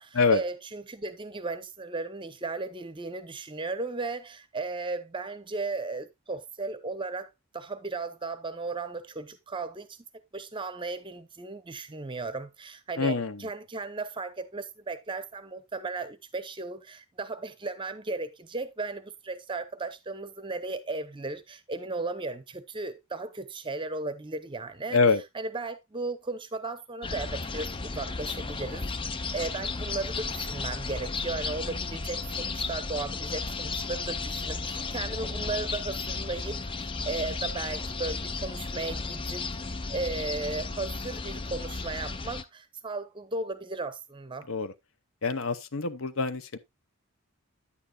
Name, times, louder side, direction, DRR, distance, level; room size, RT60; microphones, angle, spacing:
voice 1, 0.0-10.0 10.3-25.0 25.3-28.8 29.1-44.5, right 3 dB, 20° right, 0.7 m, -36 dB
voice 2, 13.0-13.5 24.9-25.2 44.5-44.7 45.2-46.6, left 4 dB, 65° left, 0.7 m, -25 dB
sound 1, 27.0-42.4, left 4 dB, 25° left, 0.5 m, -34 dB
9.8 x 9.0 x 2.4 m
head